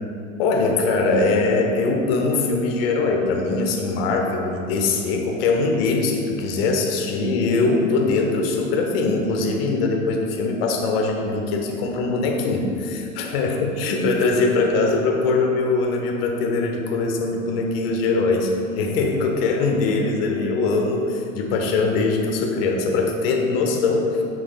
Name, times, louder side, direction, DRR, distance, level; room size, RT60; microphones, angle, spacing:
voice 1, 0.4-24.2, left 3 dB, 45° left, 2 dB, 1.1 m, -22 dB
10.0 x 6.2 x 2.4 m, 2.6 s
figure-of-eight pair, 90°, 40 cm